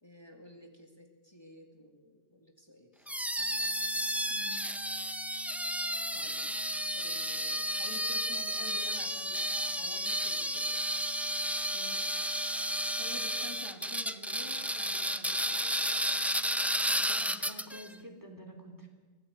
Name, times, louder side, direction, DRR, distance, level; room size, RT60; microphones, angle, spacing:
voice 1, 0.0-3.2 6.1-6.5 6.9-11.0 12.9-15.8, left 1 dB, 25° left, 2 dB, 2.2 m, -51 dB
sound 1, 3.1-17.9, equal, ahead, 0.5 m, -32 dB
sound 2, 3.4-17.1, right 7 dB, 45° right, 1.6 m, -55 dB
voice 2, 4.3-4.6 11.7-12.2 16.9-18.9, equal, 15° right, 4 dB, 3.3 m, -49 dB
24.5 x 17.0 x 8.1 m, 1.4 s
omnidirectional pair, 1.1 m